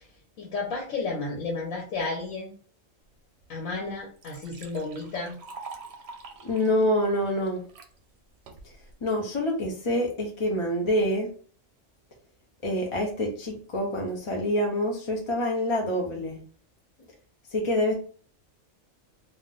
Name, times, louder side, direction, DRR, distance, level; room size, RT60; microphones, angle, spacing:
voice 1, 0.4-2.5 3.5-5.4, left 3 dB, 85° left, -1 dB, 1.2 m, -32 dB
Liquid, 3.4-3.5 3.9-7.9 8.5-8.9, right 4 dB, 60° right, 0.8 m, -45 dB
voice 2, 6.4-7.6 9.0-11.3 12.6-16.4 17.5-17.9, left 1 dB, 35° left, 0 dB, 0.5 m, -26 dB
2.5 x 2.2 x 3.7 m, 0.43 s
omnidirectional pair, 1.3 m